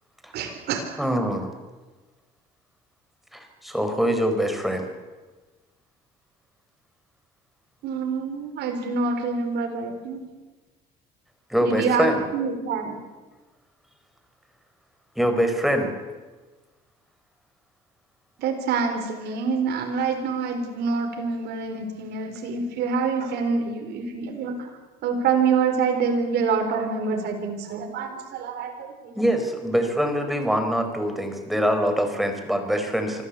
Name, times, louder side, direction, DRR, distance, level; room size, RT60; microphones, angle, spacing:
voice 1, 0.3-1.0 7.8-10.2 11.6-12.1 12.3-13.0 18.4-24.5 25.0-29.2, right 5 dB, 75° right, 4 dB, 4.4 m, -26 dB
voice 2, 1.0-1.5 3.3-4.9 11.5-12.3 15.2-15.9 29.1-33.2, equal, ahead, 6 dB, 4.4 m, -24 dB
25.0 x 15.0 x 8.4 m, 1.3 s
cardioid pair, 110°, 17 cm